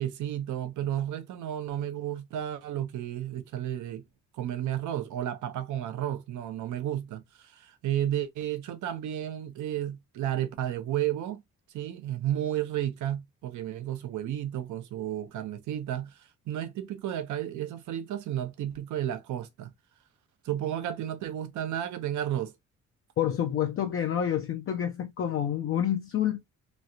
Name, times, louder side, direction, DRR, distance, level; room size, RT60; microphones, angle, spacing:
voice 1, 0.0-4.0 4.3-11.4 11.7-16.2 16.5-19.7 20.4-22.5, right 11 dB, 75° right, 0.8 m, -32 dB
voice 2, 23.2-26.4, left 10 dB, 45° left, 0.5 m, -28 dB
3.1 x 2.4 x 2.7 m
cardioid pair, 90°, 30 cm